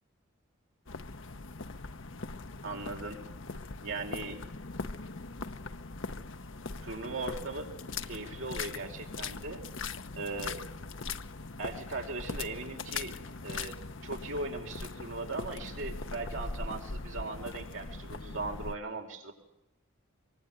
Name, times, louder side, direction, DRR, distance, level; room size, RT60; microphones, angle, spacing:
sound 1, 0.9-18.7, left 3 dB, 65° left, 1.0 m, -41 dB
voice 1, 2.6-3.3 3.8-4.4 6.8-7.7 8.0-9.6 10.2-10.6 11.6-13.1 13.4-13.8 14.0-19.3, right 3 dB, 75° right, 2 dB, 5.2 m, -38 dB
24.5 x 24.0 x 9.2 m, 0.85 s
head